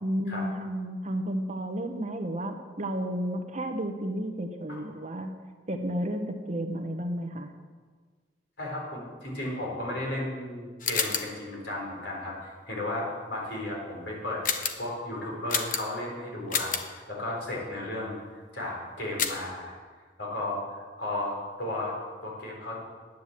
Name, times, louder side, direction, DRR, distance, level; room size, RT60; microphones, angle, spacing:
voice 1, 0.0-5.3 5.7-7.5, equal, 40° right, 5 dB, 1.0 m, -32 dB
voice 2, 8.6-14.4 14.8-18.2 18.5-19.7 20.2-21.9 22.2-22.8, left 1 dB, 75° left, -3 dB, 4.4 m, -34 dB
sound 1, 10.8-11.4 14.4-14.9 15.5-16.1 16.5-16.9 19.2-19.5, left 6 dB, 45° left, 0.9 m, -30 dB
10.0 x 9.4 x 7.6 m, 1.5 s
head